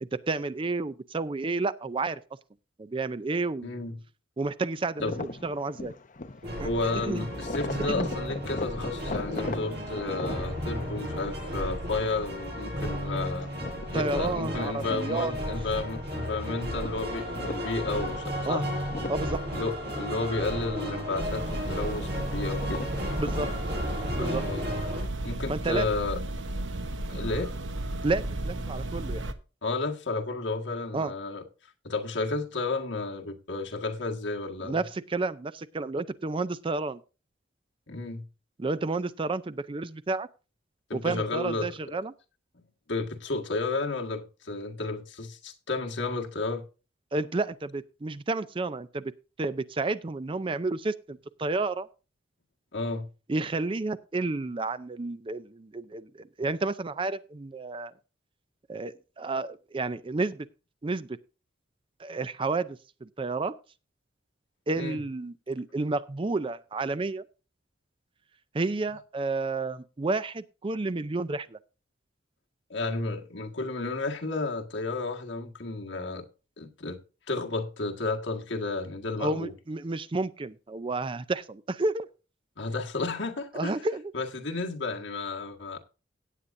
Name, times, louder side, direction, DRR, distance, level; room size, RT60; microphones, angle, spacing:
voice 1, 0.0-2.2 2.8-3.8 4.4-5.9 6.6-6.7 7.0-7.3 7.9-8.1 13.9-15.3 18.5-18.6 19.1-19.4 23.2-23.5 24.1-24.5 25.5-25.9 28.0-29.2 30.9-31.1 34.6-37.0 38.6-40.3 40.9-42.1 47.1-49.1 49.4-51.9 53.3-57.9 58.7-60.5 60.8-61.1 62.0-63.5 64.7-67.2 68.5-71.6 79.2-82.1 83.5-84.1, right 3 dB, 25° right, 0.4 m, -31 dB
voice 2, 3.6-4.0 5.0-5.2 6.6-13.5 13.9-18.7 19.5-22.8 24.1-24.7 25.2-26.2 27.1-27.6 29.6-31.4 31.8-34.8 37.9-38.2 40.9-41.8 42.5-42.6 42.9-46.6 52.7-53.1 64.8-65.0 72.7-76.2 76.6-77.0 77.3-79.5 82.6-83.8 84.1-85.8, left 3 dB, 65° left, 1.8 m, -32 dB
sound 1, 5.0-23.6, left 2 dB, 40° left, 0.8 m, -41 dB
sound 2, 6.4-25.0, equal, 60° right, 6.8 m, -34 dB
sound 3, 21.2-29.3, right 1 dB, 75° right, 1.0 m, -34 dB
17.0 x 8.5 x 2.6 m
head